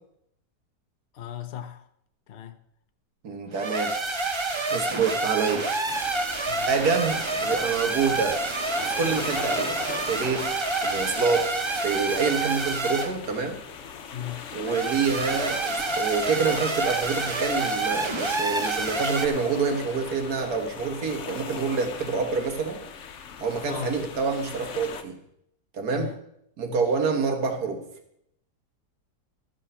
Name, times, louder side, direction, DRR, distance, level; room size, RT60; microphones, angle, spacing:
voice 1, 1.1-1.9 2.3-2.6 6.5-6.7 14.1-14.4 23.7-24.0 25.9-26.2 26.7-26.9, left 10 dB, 75° left, 0.5 m, -36 dB
voice 2, 3.2-4.0 4.7-5.7 6.6-10.5 10.8-11.5 11.8-13.6 14.5-22.8 23.4-25.2 25.7-26.1 26.6-27.8, right 5 dB, 65° right, 1.9 m, -27 dB
sound 1, 3.5-13.2 14.6-19.3, right 3 dB, 45° right, 0.3 m, -28 dB
sound 2, 5.9-25.0, left 6 dB, 55° left, 1.0 m, -39 dB
13.0 x 6.7 x 5.6 m
omnidirectional pair, 1.8 m